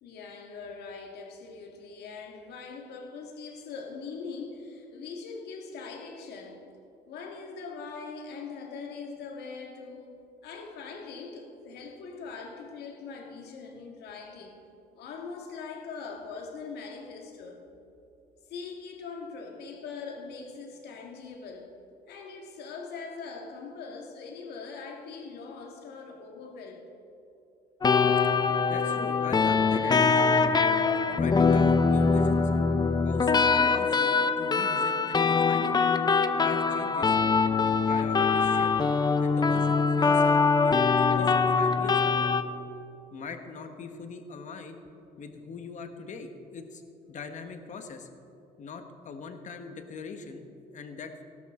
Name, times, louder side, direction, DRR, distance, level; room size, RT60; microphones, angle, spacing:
voice 1, 0.0-6.7 7.1-14.7 15.0-17.6 18.5-21.8 22.1-26.9, left 4 dB, 75° left, 1.9 m, -41 dB
sound 1, 27.8-42.4, left 4 dB, 25° left, 0.6 m, -23 dB
voice 2, 28.7-30.3 31.1-32.5 33.0-35.7 36.3-37.2 37.9-38.8 39.2-42.3 43.1-44.8 45.2-46.8 47.1-48.1 48.6-51.2, left 5 dB, 45° left, 1.3 m, -41 dB
16.5 x 12.5 x 3.8 m
cardioid pair, 110°, 17 cm